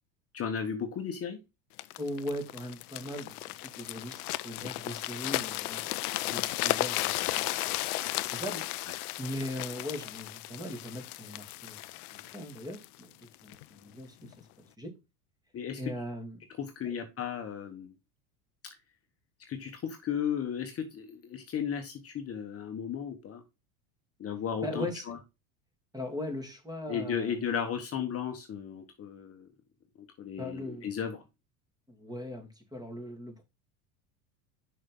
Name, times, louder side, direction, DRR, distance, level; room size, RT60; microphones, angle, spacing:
voice 1, 0.3-1.4 15.5-15.8 16.6-17.9 19.5-23.4 24.2-25.2 26.9-29.5 30.0-31.1, left 7 dB, 30° left, 1.3 m, -35 dB
sound 1, 1.8-13.6 14.2-14.4, left 18 dB, 75° left, 0.7 m, -35 dB
voice 2, 2.0-5.9 6.2-7.6 8.0-8.9 9.2-11.8 12.1-13.1 13.4-14.5 14.8-14.9 15.8-16.4 16.8-16.9 24.6-25.2 25.9-27.4 30.4-30.9 31.9-33.4, left 1 dB, 10° right, 2.3 m, -39 dB
6.3 x 5.6 x 3.8 m
hypercardioid pair, 100°, 45 cm